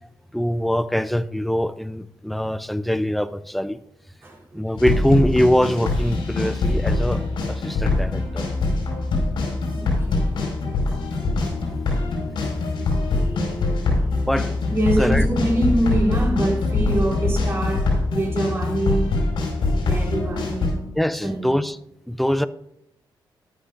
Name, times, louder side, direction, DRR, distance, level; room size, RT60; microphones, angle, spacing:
voice 1, 0.3-3.8 4.5-8.4 14.2-14.5 15.0-15.3 21.0-21.8 22.1-22.5, equal, ahead, 13 dB, 0.4 m, -23 dB
voice 2, 4.2-4.7 9.7-11.4 11.7-11.8 13.1-13.5 14.7-19.2 19.9-20.9 21.2-21.5, right 1 dB, 30° right, -3 dB, 3.1 m, -26 dB
sound 1, 4.8-20.7, left 3 dB, 75° left, 4.9 m, -23 dB
13.5 x 11.5 x 2.5 m, 0.82 s
cardioid pair, 120°, 8 cm